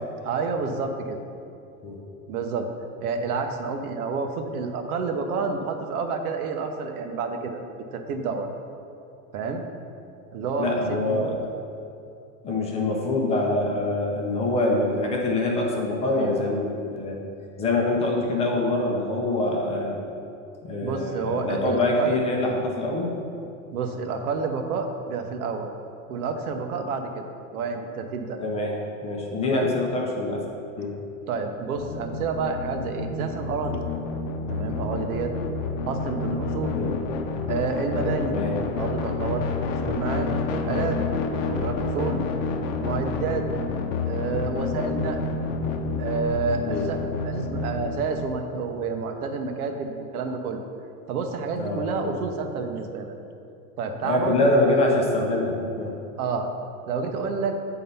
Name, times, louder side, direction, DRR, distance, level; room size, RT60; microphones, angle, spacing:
voice 1, 0.2-1.2 2.3-2.7 3.0-7.7 7.9-8.5 9.3-9.6 10.3-11.4 20.8-22.1 23.7-25.7 26.1-28.4 29.4-29.7 31.3-33.8 34.5-35.3 35.9-36.8 37.5-38.3 38.7-41.0 41.3-42.2 42.8-43.5 44.1-45.3 46.0-50.6 51.1-53.1 53.8-54.5 56.2-56.5 56.9-57.5, right 4 dB, 85° right, 5 dB, 1.0 m, -29 dB
voice 2, 10.6-11.4 12.4-17.2 17.6-20.0 20.6-23.1 28.4-28.8 29.0-30.4 30.8-30.9 36.7-36.9 38.2-38.6 46.7-46.9 51.6-52.1 54.0-55.9, left 2 dB, 15° left, -1 dB, 0.5 m, -25 dB
sound 1, 31.7-48.2, left 4 dB, 60° left, 0.8 m, -29 dB
8.3 x 3.9 x 5.5 m, 2.6 s
supercardioid pair, 155°, 43 cm